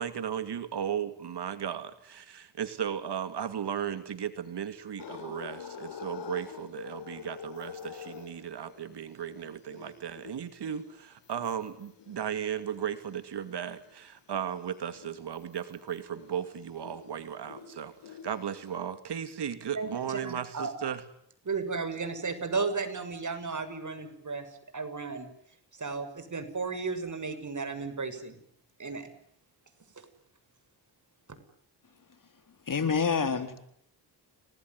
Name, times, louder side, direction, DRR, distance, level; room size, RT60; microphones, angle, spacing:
voice 1, 0.0-21.0, right 8 dB, 70° right, 10 dB, 2.4 m, -36 dB
sound 1, 5.0-13.2 13.7-18.8, left 7 dB, 75° left, 4.9 m, -47 dB
voice 2, 19.7-20.7 21.5-24.5 24.7-25.3 25.8-28.4 28.8-29.1, right 4 dB, 45° right, 10 dB, 6.9 m, -34 dB
voice 3, 32.7-33.6, left 5 dB, 50° left, 9 dB, 3.9 m, -27 dB
29.5 x 20.0 x 9.7 m, 0.71 s
cardioid pair, 65°, 42 cm